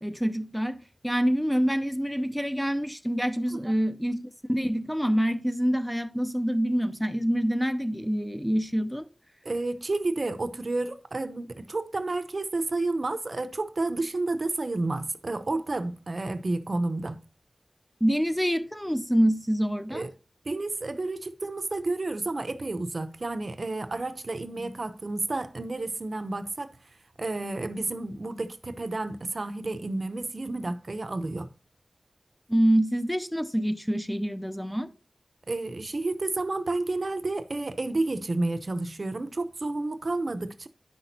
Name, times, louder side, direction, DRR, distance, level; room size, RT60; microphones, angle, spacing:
voice 1, 0.0-9.1 18.0-20.1 24.6-24.8 32.5-34.9, equal, 5° left, 0.5 m, -26 dB
voice 2, 9.4-17.2 19.9-20.1 20.4-26.8 27.2-31.5 35.5-40.7, right 2 dB, 60° right, 0.6 m, -31 dB
9.8 x 5.9 x 2.7 m
wide cardioid pair, 80°, 0 cm